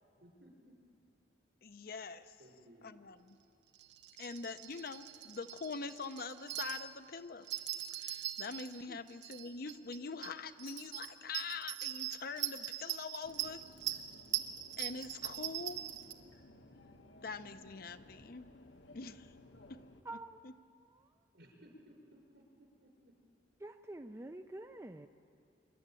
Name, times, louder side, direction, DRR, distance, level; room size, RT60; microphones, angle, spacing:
voice 1, 0.2-0.7 2.4-3.1 21.3-23.1, equal, 70° right, 1 dB, 5.3 m, -60 dB
voice 2, 1.6-2.4 2.8-3.4 4.2-7.5 8.0-13.6 14.8-15.8 17.2-18.5 18.9-19.3 19.7-19.8 20.1-20.2 20.4-20.5, left 4 dB, 55° left, 10 dB, 0.7 m, -44 dB
sound 1, 3.8-6.9 7.4-8.7 9.1-10.0 10.2-10.3 10.6-16.1, right 13 dB, 90° right, 1.2 m, -41 dB
sound 2, 13.2-20.0, left 1 dB, 80° left, 1.2 m, -58 dB
voice 3, 20.0-21.1 23.6-25.1, right 2 dB, 15° right, 7 dB, 0.4 m, -48 dB
26.0 x 12.0 x 9.0 m, 2.5 s
head